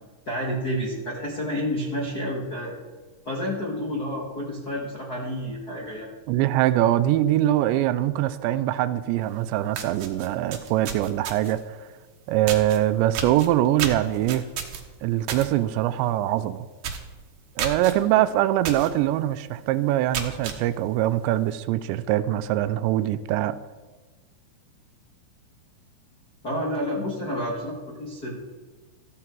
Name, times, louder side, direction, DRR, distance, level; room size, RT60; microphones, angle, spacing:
voice 1, 0.0-2.8 3.2-6.1 26.4-28.4, equal, 60° left, -4 dB, 0.9 m, -30 dB
voice 2, 6.3-11.8 12.3-14.4 15.0-16.7 17.6-23.6, right 13 dB, 85° right, 13 dB, 2.8 m, -23 dB
sound 1, 9.3-9.4 9.7-11.6 12.5-12.8 13.1-15.5 15.8-16.1 16.4-16.5 16.8-17.1 17.6-17.9 18.6-18.9 19.3-19.4 19.9-20.6, right 7 dB, 65° right, 2.3 m, -31 dB
14.5 x 13.5 x 4.6 m, 1.3 s
omnidirectional pair, 5.1 m